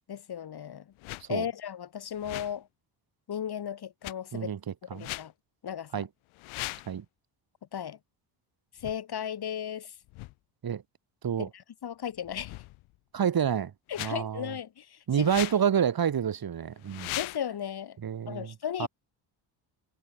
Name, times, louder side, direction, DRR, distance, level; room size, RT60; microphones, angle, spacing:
voice 1, 0.1-0.8 1.3-2.7 3.3-4.5 4.8-5.3 5.6-6.0 7.7-8.0 8.8-9.9 11.4-12.6 13.9-15.3 17.1-18.0 18.3-18.9, left 9 dB, 50° left, 3.3 m, -36 dB
sound 1, 1.0-1.3 2.1-2.6 4.0-4.1 5.0-5.3 6.3-6.9 8.8-9.0 10.1-10.3 12.2-13.0 13.9-14.1 15.2-15.6 16.8-17.4, left 21 dB, 85° left, 1.6 m, -38 dB
voice 2, 13.1-13.7 14.0-14.5 15.1-17.1 18.0-18.5 18.8-18.9, right 8 dB, 45° right, 3.4 m, -28 dB
supercardioid pair, 75°, 48 cm